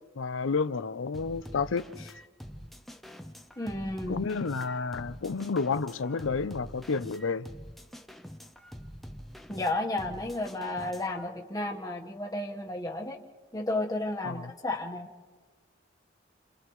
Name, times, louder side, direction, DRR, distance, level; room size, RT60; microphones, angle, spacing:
voice 1, 0.2-2.1 4.1-7.5 14.2-14.5, left 4 dB, 85° left, 0.6 m, -30 dB
sound 1, 1.1-11.2, equal, ahead, 0.7 m, -46 dB
voice 2, 3.6-4.3 9.5-13.2 13.5-15.1, left 2 dB, 20° left, 1.3 m, -32 dB
29.0 x 28.5 x 3.2 m
head